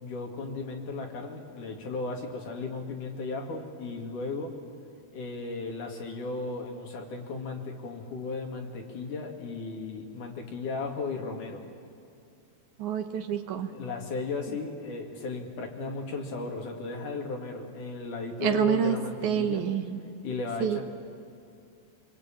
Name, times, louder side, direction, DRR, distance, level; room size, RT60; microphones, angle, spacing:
voice 1, 0.0-4.5 5.1-11.6 13.7-19.6 20.2-20.8, left 3 dB, 55° left, 1 dB, 3.5 m, -35 dB
voice 2, 12.8-13.7 18.4-19.0 19.2-20.0 20.6-20.8, right 8 dB, 65° right, 6 dB, 2.1 m, -27 dB
26.0 x 22.0 x 8.8 m, 2.5 s
omnidirectional pair, 4.7 m